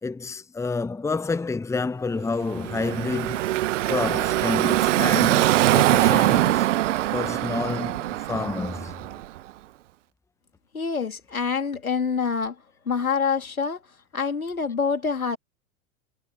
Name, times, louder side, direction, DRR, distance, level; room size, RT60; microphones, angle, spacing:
voice 1, 0.0-6.7 7.1-9.0, left 4 dB, 5° left, 1.1 m, -29 dB
Car passing by / Traffic noise roadway noise, 2.4-9.4, right 15 dB, 60° right, 1.4 m, -22 dB
voice 2, 10.7-12.6 12.8-13.8 14.1-15.4, left 5 dB, 80° left, 3.2 m, -26 dB
figure-of-eight pair, 90°, 42 cm